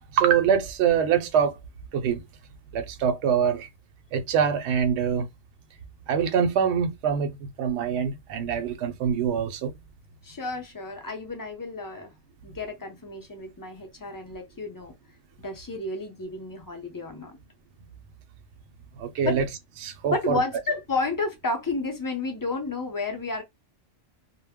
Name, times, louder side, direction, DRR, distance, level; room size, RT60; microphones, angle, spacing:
voice 1, 0.0-1.6 1.9-2.2 2.7-3.7 4.1-5.3 6.1-9.7 19.0-19.5 19.8-20.4, right 7 dB, 65° right, 0.8 m, -24 dB
voice 2, 10.2-12.1 12.4-14.9 15.4-17.4 19.2-19.4 20.1-23.4, left 3 dB, 25° left, 0.5 m, -31 dB
2.2 x 2.0 x 3.5 m
omnidirectional pair, 1.3 m